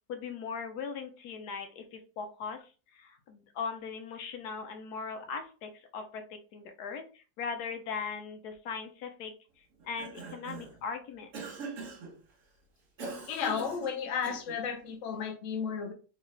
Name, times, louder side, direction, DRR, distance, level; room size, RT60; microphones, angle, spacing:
voice 1, 0.1-11.3, left 5 dB, 85° left, 1.3 m, -39 dB
Cough, 9.8-10.8 11.3-12.2 13.0-14.7, right 3 dB, 60° right, 1.3 m, -42 dB
voice 2, 13.3-15.9, left 6 dB, 60° left, 1.1 m, -33 dB
3.7 x 3.5 x 3.3 m
omnidirectional pair, 1.6 m